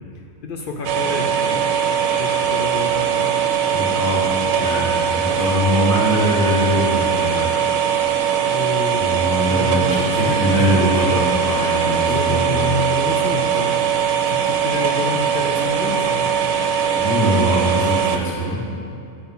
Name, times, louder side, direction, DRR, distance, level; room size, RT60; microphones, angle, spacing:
voice 1, 0.4-1.7 2.2-3.3 4.7-4.9 5.3-5.6 8.5-11.0 12.1-13.8 14.2-16.2, left 2 dB, 65° left, 2 dB, 0.5 m, -28 dB
sound 1, 0.8-18.2, right 8 dB, 75° right, 1.0 m, -20 dB
voice 2, 3.7-7.5 8.9-12.6 16.9-18.6, equal, 15° left, -7 dB, 1.4 m, -22 dB
sound 2, 9.5-14.3, equal, 85° left, 1.1 m, -39 dB
8.6 x 3.9 x 5.5 m, 2.4 s
omnidirectional pair, 1.5 m